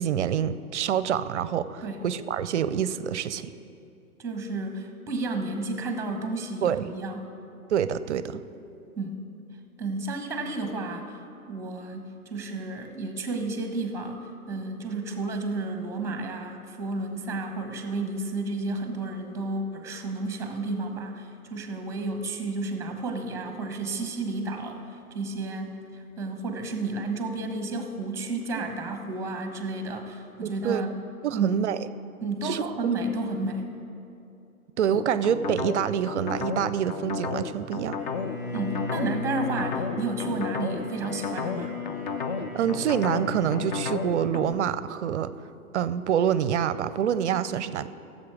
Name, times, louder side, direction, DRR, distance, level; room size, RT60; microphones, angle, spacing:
voice 1, 0.0-3.5 6.6-6.9 7.7-8.4 30.4-30.9 31.2-31.8 32.4-32.7 34.8-38.0 42.5-45.3 45.7-47.9, right 9 dB, 55° right, 15 dB, 0.5 m, -26 dB
voice 2, 4.2-7.3 9.0-9.3 9.8-11.2 11.5-14.2 14.5-24.8 25.1-30.9 31.3-31.6 32.2-33.7 38.5-41.8, right 2 dB, 5° right, 6 dB, 1.0 m, -32 dB
sound 1, 34.9-44.5, left 5 dB, 35° left, 0.5 m, -33 dB
Bowed string instrument, 38.0-44.2, left 4 dB, 15° left, 2.7 m, -36 dB
16.0 x 7.6 x 4.8 m, 2.7 s
figure-of-eight pair, 115°, 44 cm